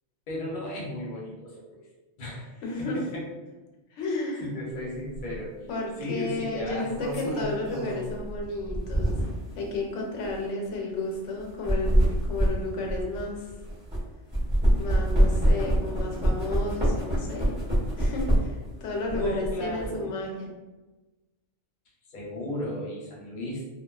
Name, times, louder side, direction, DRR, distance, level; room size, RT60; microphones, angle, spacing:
voice 1, 0.3-1.9 2.2-3.2 4.4-5.5 6.0-6.9 19.1-20.1 22.1-23.6, left 1 dB, 50° left, -4 dB, 0.7 m, -35 dB
voice 2, 2.6-3.0 3.9-4.4 5.7-9.3 9.5-13.5 14.8-17.6 18.0-20.5, left 2 dB, 80° left, 0 dB, 0.9 m, -32 dB
sound 1, 5.1-5.3 6.6-9.5 10.2-10.3 11.4-14.0 14.3-18.7 19.0-19.9, right 1 dB, 10° right, 0.7 m, -25 dB
2.4 x 2.2 x 2.3 m, 1.2 s
omnidirectional pair, 1.2 m